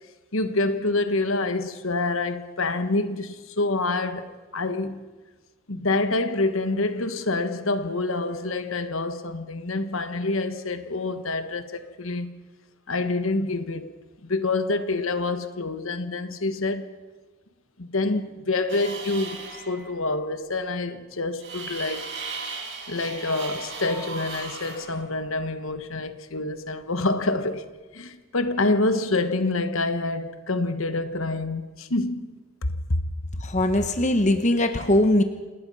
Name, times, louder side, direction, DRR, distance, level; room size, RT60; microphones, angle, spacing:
voice 1, 0.3-5.0 5.7-12.3 12.9-13.9 14.2-16.9 17.8-22.1 22.9-27.6 27.9-32.3 32.6-33.0, left 2 dB, 65° left, 1.3 m, -27 dB
Metallic scraping in metal barrel, 18.7-20.0 21.4-25.7, right 4 dB, 55° right, 5.9 m, -37 dB
voice 2, 33.4-35.2, left 1 dB, 30° left, 1.1 m, -21 dB
27.5 x 19.5 x 5.5 m
head